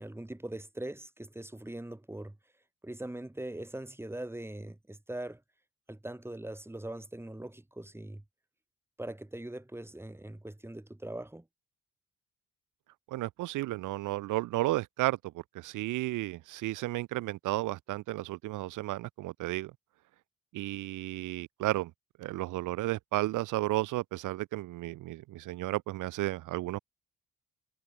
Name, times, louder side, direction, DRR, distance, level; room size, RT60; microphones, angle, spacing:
voice 1, 0.0-2.4 2.8-5.4 5.9-8.2 9.0-11.5, right 1 dB, 10° right, 3.9 m, -41 dB
voice 2, 13.1-15.2 15.5-19.7 20.5-21.9 22.2-26.8, right 17 dB, 85° right, 0.8 m, -33 dB
cardioid pair, 90°, 30 cm